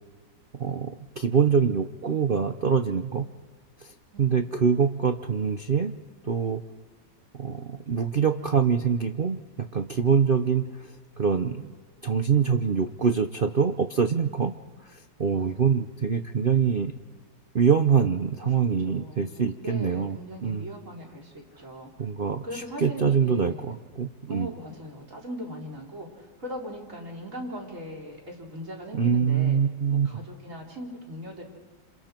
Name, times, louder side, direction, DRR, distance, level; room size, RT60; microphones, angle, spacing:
voice 1, 0.5-3.3 3.8-6.6 7.3-11.7 12.0-14.5 14.8-16.9 17.5-20.7 22.0-24.5 28.9-30.1, right 6 dB, 65° right, 7 dB, 0.5 m, -25 dB
voice 2, 15.3-15.7 18.3-18.5 18.8-21.9 22.4-23.7 24.3-29.6 29.9-31.4, equal, 40° right, 1 dB, 4.0 m, -40 dB
29.0 x 27.0 x 4.5 m, 1.4 s
omnidirectional pair, 2.1 m